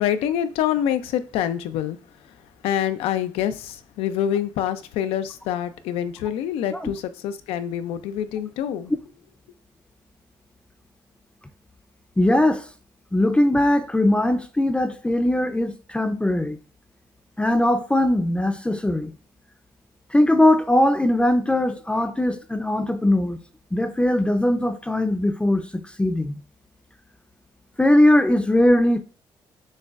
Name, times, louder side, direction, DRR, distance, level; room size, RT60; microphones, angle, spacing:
voice 1, 0.0-2.0 2.3-2.4 2.6-8.9, left 10 dB, 85° left, 0.4 m, -26 dB
voice 2, 12.2-12.7 13.1-16.6 17.4-19.1 20.1-23.4 23.7-26.3 27.8-29.0, left 1 dB, 10° left, 0.5 m, -20 dB
6.3 x 2.2 x 2.4 m
supercardioid pair, 60°, 10 cm